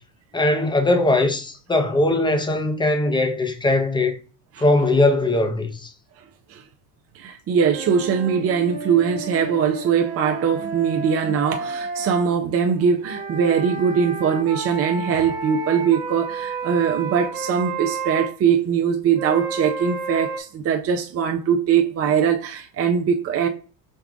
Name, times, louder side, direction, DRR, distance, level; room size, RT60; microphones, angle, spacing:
voice 1, 0.3-4.2 4.6-5.9, left 2 dB, 10° left, 0.8 m, -20 dB
voice 2, 7.1-23.5, right 7 dB, 30° right, 0.5 m, -21 dB
sound 1, 7.7-12.3 13.0-18.3 19.2-20.4, right 4 dB, 55° right, 1.5 m, -31 dB
5.3 x 2.3 x 3.4 m
hypercardioid pair, 80°, 48 cm